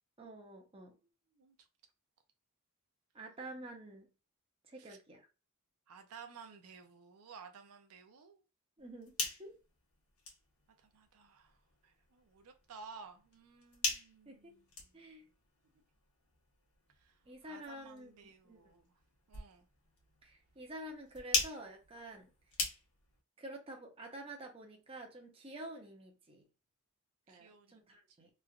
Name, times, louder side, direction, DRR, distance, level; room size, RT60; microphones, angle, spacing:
voice 1, 0.2-1.0 3.1-4.1 4.7-5.3 8.8-9.5 14.3-14.5 14.9-15.3 17.3-18.6 20.2-22.3 23.4-26.4 27.3-28.3, right 1 dB, 25° right, 0.7 m, -49 dB
voice 2, 5.9-8.4 10.8-11.6 11.8-14.9 17.0-17.2 17.4-18.9 19.3-19.7 27.3-27.8, right 5 dB, 80° right, 0.5 m, -55 dB
sound 1, 8.8-23.2, left 3 dB, 80° left, 1.0 m, -43 dB
3.1 x 2.4 x 2.3 m
head